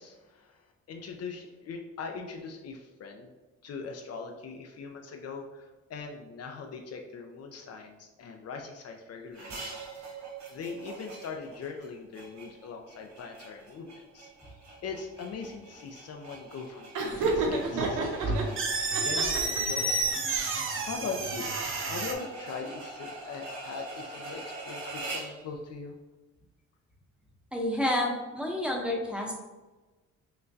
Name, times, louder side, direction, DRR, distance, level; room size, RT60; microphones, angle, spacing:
voice 1, 0.0-3.3 3.6-9.7 9.9-10.2 10.5-20.4 20.8-21.5 21.9-26.0, left 4 dB, 55° left, 3 dB, 0.5 m, -41 dB
sound 1, 9.3-25.4, right 2 dB, 70° right, 1.3 m, -44 dB
Laughter, 16.9-18.4 18.9-19.8, right 3 dB, 90° right, 0.8 m, -30 dB
sound 2, 17.1-22.1, right 3 dB, 45° right, 0.7 m, -30 dB
voice 2, 27.5-29.3, left 1 dB, 5° right, 0 dB, 0.8 m, -29 dB
5.8 x 2.2 x 2.7 m, 1.2 s
cardioid pair, 90°, 30 cm